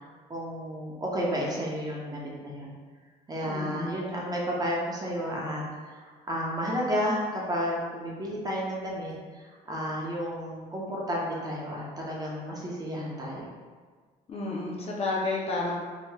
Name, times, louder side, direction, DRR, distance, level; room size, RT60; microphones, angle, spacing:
voice 1, 0.3-2.7 3.3-13.5, equal, 20° right, -4 dB, 0.6 m, -32 dB
voice 2, 3.5-3.9 14.3-15.8, left 3 dB, 35° left, -3 dB, 0.5 m, -31 dB
3.0 x 2.8 x 2.2 m, 1.5 s
cardioid pair, 110°, 17 cm